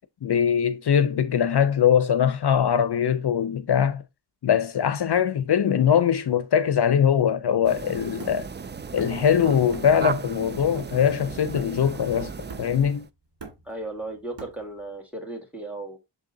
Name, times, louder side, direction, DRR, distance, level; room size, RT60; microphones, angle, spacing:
voice 1, 0.2-4.0 4.4-8.5 8.9-12.3 12.6-13.1, left 8 dB, 65° left, 0.6 m, -22 dB
sound 1, 7.6-13.1, right 5 dB, 25° right, 0.3 m, -35 dB
Hammer, 8.2-9.3 9.7-10.1 10.4-12.0 12.5-12.9 13.2-14.9, right 4 dB, 75° right, 2.5 m, -44 dB
voice 2, 13.6-16.0, right 2 dB, 5° right, 2.1 m, -35 dB
6.7 x 3.6 x 3.8 m
wide cardioid pair, 60°, 43 cm